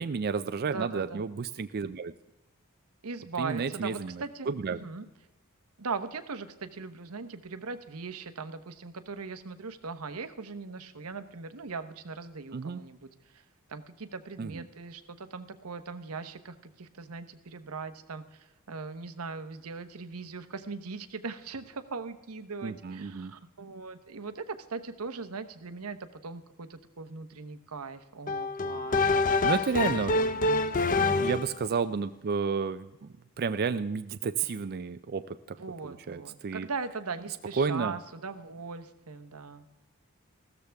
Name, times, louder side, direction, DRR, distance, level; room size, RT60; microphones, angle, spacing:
voice 1, 0.0-2.1 3.4-4.8 12.5-12.8 14.4-14.6 22.6-23.3 29.4-30.2 31.0-35.4 35.8-36.7 37.6-38.0, right 5 dB, 45° right, 11 dB, 0.4 m, -31 dB
voice 2, 0.7-1.2 3.0-5.0 5.8-13.4 13.7-29.2 29.7-30.3 30.6-31.2 35.6-39.6, right 4 dB, 90° right, 10 dB, 1.0 m, -40 dB
sound 1, 28.3-31.6, left 3 dB, 40° left, 0.6 m, -26 dB
15.5 x 13.0 x 3.4 m, 1.0 s
head